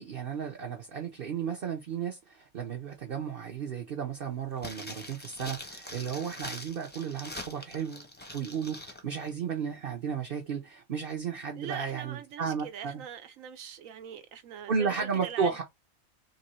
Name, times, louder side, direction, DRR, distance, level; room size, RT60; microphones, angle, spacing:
voice 1, 0.0-8.1 8.3-13.0 14.7-15.6, right 6 dB, 45° right, 0.9 m, -33 dB
sound 1, 4.6-9.0 9.3-9.4, left 1 dB, 10° left, 0.6 m, -43 dB
voice 2, 11.5-15.6, right 8 dB, 70° right, 1.1 m, -42 dB
3.7 x 2.7 x 4.2 m
omnidirectional pair, 1.5 m